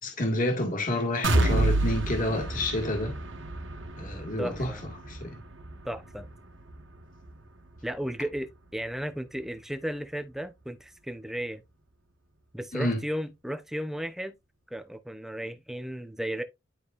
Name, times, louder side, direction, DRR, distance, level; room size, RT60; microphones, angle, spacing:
voice 1, 0.0-3.2 4.0-4.7 5.1-5.3 12.7-13.0, left 1 dB, 45° left, 2.0 m, -29 dB
sound 1, 1.2-9.0 9.4-9.5 10.0-10.1, right 2 dB, 85° right, 1.4 m, -30 dB
voice 2, 4.4-4.8 5.8-6.3 7.8-11.6 12.5-14.3 14.7-16.4, equal, ahead, 0.8 m, -34 dB
10.5 x 5.1 x 2.5 m
head